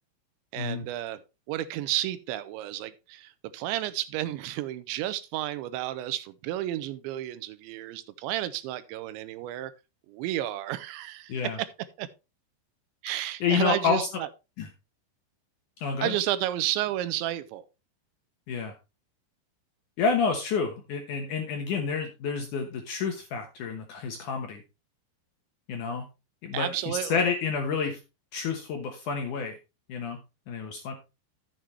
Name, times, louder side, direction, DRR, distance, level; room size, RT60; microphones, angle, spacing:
voice 1, 0.5-1.2 1.5-9.7 10.1-11.7 12.0-12.1 13.0-14.3 16.0-17.6 26.5-27.3, right 14 dB, 85° right, 2.9 m, -32 dB
voice 2, 13.4-14.1 14.6-14.7 15.8-16.2 18.5-18.7 20.0-24.6 25.7-26.1 26.4-28.0 28.3-29.6 29.9-30.2 30.5-30.9, left 5 dB, 80° left, 1.8 m, -29 dB
12.5 x 7.5 x 3.2 m
omnidirectional pair, 5.3 m